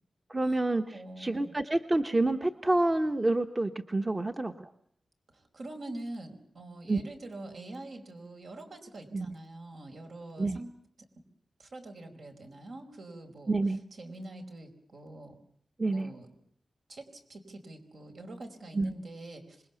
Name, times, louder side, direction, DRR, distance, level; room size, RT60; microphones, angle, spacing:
voice 1, 0.3-4.7 6.9-7.0 9.1-9.3 10.4-10.6 13.5-13.8 15.8-16.1 18.7-18.9, right 2 dB, 25° right, 6 dB, 1.1 m, -28 dB
voice 2, 0.9-1.5 5.3-10.7 11.6-13.5 14.0-15.4 15.8-16.3 16.9-19.6, right 2 dB, 70° right, 5 dB, 4.9 m, -45 dB
26.5 x 21.0 x 7.1 m, 0.69 s
wide cardioid pair, 90°, 0 cm